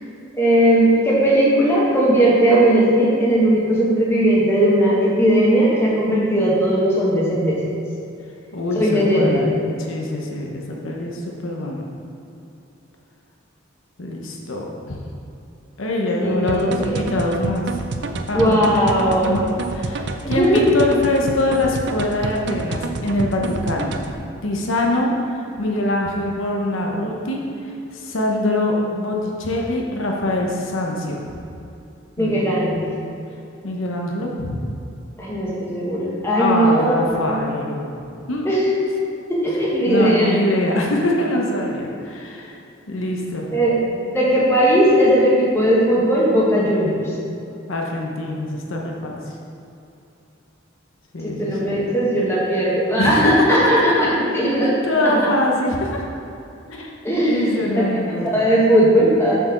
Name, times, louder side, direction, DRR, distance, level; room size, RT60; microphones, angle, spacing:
voice 1, 0.3-7.6 8.7-9.5 16.2-17.1 18.3-19.3 20.2-20.7 32.2-32.8 35.2-37.4 38.4-38.7 39.3-40.3 43.5-47.1 51.2-54.7 55.0-55.3 57.0-59.4, right 1 dB, 10° left, -6 dB, 1.5 m, -18 dB
voice 2, 8.5-9.5 9.8-11.8 14.0-15.0 15.8-17.7 18.3-18.7 19.2-19.4 19.7-23.9 24.4-31.3 32.2-32.4 33.6-34.6 36.4-37.9 38.3-38.5 39.8-42.5 42.9-43.5 47.7-49.2 51.1-51.9 53.0-53.7 54.6-56.0 56.7-58.3, left 1 dB, 80° left, -1 dB, 0.9 m, -23 dB
sound 1, 16.5-24.1, right 3 dB, 55° right, 0.5 m, -28 dB
6.9 x 4.6 x 6.0 m, 2.7 s
head